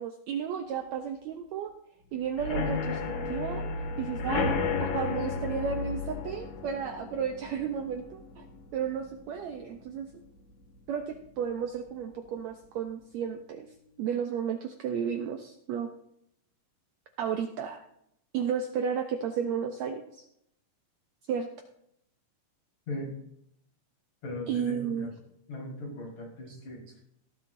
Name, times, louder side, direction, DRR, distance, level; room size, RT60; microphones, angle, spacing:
voice 1, 0.0-1.7 2.1-3.0 3.3-3.6 4.0-4.5 4.8-8.5 8.7-10.1 10.9-13.7 14.0-15.9 17.2-17.8 18.3-20.0 21.3-21.5 24.5-25.1 26.5-26.6, right 7 dB, 75° right, 5 dB, 1.7 m, -33 dB
sound 1, 2.3-10.0 10.4-10.8 11.0-11.1 11.5-11.6, left 4 dB, 85° left, 3.2 m, -33 dB
voice 2, 24.2-25.1 25.5-26.8, left 1 dB, 55° left, -4 dB, 5.8 m, -38 dB
18.0 x 11.5 x 2.6 m, 0.77 s
omnidirectional pair, 3.9 m